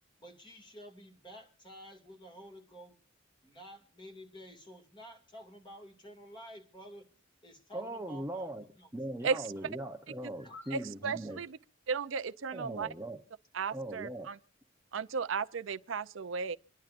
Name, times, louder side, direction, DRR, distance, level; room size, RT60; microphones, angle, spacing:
voice 1, 0.2-3.0 3.4-7.1 7.4-8.5 8.8-8.9 10.4-10.7 11.0-11.4, equal, 25° left, 2.3 m, -51 dB
voice 2, 7.7-8.7 8.9-11.4 12.5-13.2 13.7-14.3, right 1 dB, 15° right, 0.8 m, -40 dB
voice 3, 10.7-11.6 11.9-12.9 13.5-14.4 14.9-16.6, right 5 dB, 75° right, 0.5 m, -34 dB
26.0 x 10.5 x 2.5 m
head